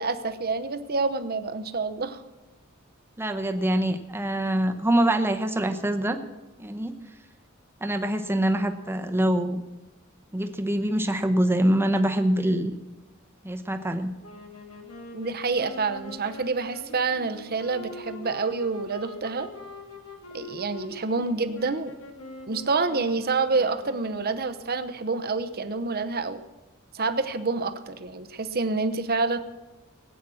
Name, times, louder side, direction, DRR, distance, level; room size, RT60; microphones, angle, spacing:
voice 1, 0.0-2.2 15.1-19.5 20.3-21.9 22.5-26.4 26.9-29.4, right 4 dB, 50° right, 10 dB, 0.9 m, -27 dB
voice 2, 3.2-6.2 6.6-6.9 7.8-9.6 10.3-12.7 13.4-14.1, right 1 dB, 10° right, 7 dB, 1.0 m, -24 dB
sound 1, 14.2-24.5, left 1 dB, 75° left, 2.5 m, -43 dB
18.5 x 9.2 x 6.3 m, 1.1 s
head